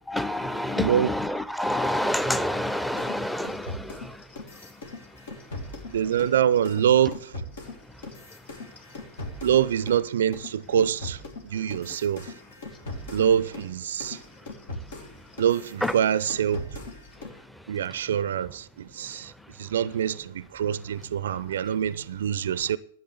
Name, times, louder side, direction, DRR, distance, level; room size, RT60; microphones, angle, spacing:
voice 1, 0.1-4.2 15.8-15.9, left 1 dB, 5° left, 0.8 m, -28 dB
voice 2, 0.8-1.1 5.9-7.4 9.4-12.3 13.1-14.2 15.4-16.8 17.7-22.8, right 9 dB, 70° right, 0.5 m, -25 dB
sound 1, 3.0-10.0 10.3-17.4, left 2 dB, 70° left, 2.4 m, -40 dB
12.0 x 7.5 x 8.4 m
figure-of-eight pair, 95°, 0 cm